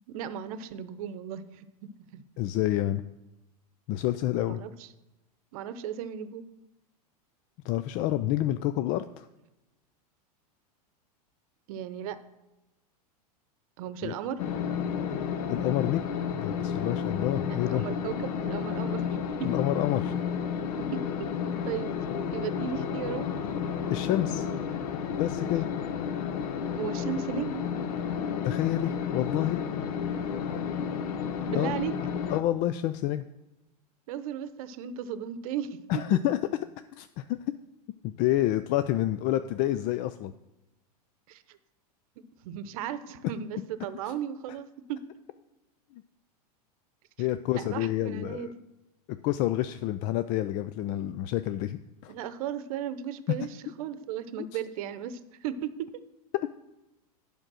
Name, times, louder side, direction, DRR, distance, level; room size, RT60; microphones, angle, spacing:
voice 1, 0.1-1.7 2.1-2.2 4.5-4.9 5.5-6.4 11.7-12.2 13.8-14.4 17.6-19.5 20.9-21.3 21.6-21.9 22.3-23.3 26.7-27.7 31.5-31.9 34.1-36.0 41.3-41.6 42.4-45.0 47.2-47.3 47.5-48.5 52.1-55.9, right 9 dB, 65° right, 13 dB, 0.8 m, -36 dB
voice 2, 2.4-3.0 3.9-4.6 7.6-9.3 14.0-14.1 15.5-16.1 16.3-17.8 19.4-20.2 23.9-24.5 25.1-25.7 28.4-29.7 31.5-31.7 32.3-33.2 35.9-36.4 36.9-37.4 38.0-40.3 44.1-44.2 47.2-48.5 49.1-52.1, left 13 dB, 45° left, 11 dB, 0.4 m, -28 dB
sound 1, 14.4-32.4, left 7 dB, 65° left, 0.8 m, -31 dB
8.9 x 5.2 x 6.2 m, 0.98 s
hypercardioid pair, 115°, 20 cm